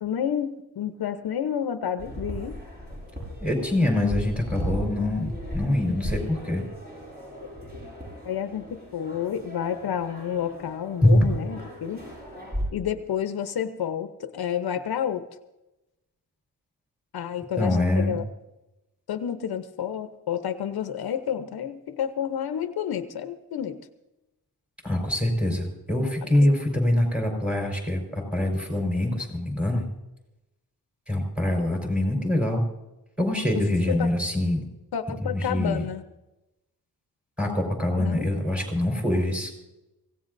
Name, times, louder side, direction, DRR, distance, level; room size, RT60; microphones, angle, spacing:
voice 1, 0.0-2.6 8.2-12.0 12.7-15.3 17.1-18.2 19.1-23.9 26.4-26.5 33.9-34.1 34.9-36.0 38.0-38.3, left 9 dB, 75° left, 9 dB, 0.9 m, -30 dB
sound 1, 2.0-12.6, equal, 25° right, 7.3 m, -36 dB
voice 2, 3.4-6.6 11.0-11.3 17.6-18.2 24.8-29.9 31.1-32.6 33.2-34.6 35.3-35.9 37.4-39.5, left 1 dB, 5° right, 1 dB, 4.5 m, -24 dB
25.0 x 16.5 x 2.6 m, 0.97 s
wide cardioid pair, 135°, 37 cm